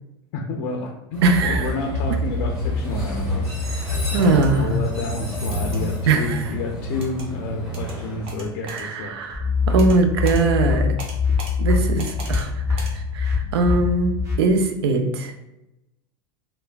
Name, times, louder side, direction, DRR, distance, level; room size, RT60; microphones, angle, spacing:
voice 1, 0.3-3.6 4.2-9.2, left 3 dB, 60° left, 1 dB, 0.4 m, -30 dB
Train, 1.1-9.1, left 1 dB, 5° right, 1.2 m, -27 dB
voice 2, 1.2-1.7 4.1-4.7 6.1-6.5 8.7-10.9 11.6-14.1 14.4-15.3, right 3 dB, 85° right, 5 dB, 0.4 m, -21 dB
sound 1, 4.2-4.5 5.5-5.8 7.0-7.3 7.7-8.0 8.3-8.9 9.8-10.0 10.3-10.4 11.0-11.5 12.0-12.5 12.8-12.9, right 3 dB, 45° right, 0.7 m, -38 dB
sound 2, 9.3-14.4, left 4 dB, 25° right, 1.0 m, -23 dB
3.2 x 2.1 x 2.3 m, 0.88 s
supercardioid pair, 110°, 13 cm